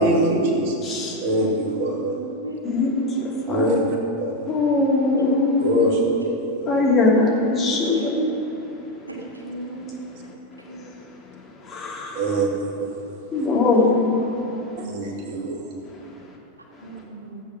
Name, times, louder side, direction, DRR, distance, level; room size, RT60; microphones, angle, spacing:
voice 1, 0.0-2.2 3.5-3.8 4.2-4.4 5.6-6.8 12.1-12.9 14.9-15.6, right 1 dB, 45° right, 1 dB, 2.1 m, -23 dB
voice 2, 0.8-1.2 2.6-3.0 3.5-3.7 4.5-5.7 6.7-8.3 11.7-12.2 13.3-14.1, left 3 dB, 25° left, -3 dB, 2.8 m, -20 dB
voice 3, 1.4-3.4 5.2-6.1 7.6-8.1 9.1-9.2 9.4-9.8 10.7-10.8 13.5-14.0 14.4-14.9 16.8-17.3, right 1 dB, 80° right, -2 dB, 3.0 m, -35 dB
14.5 x 8.7 x 6.2 m, 3.0 s
figure-of-eight pair, 90°, 0 cm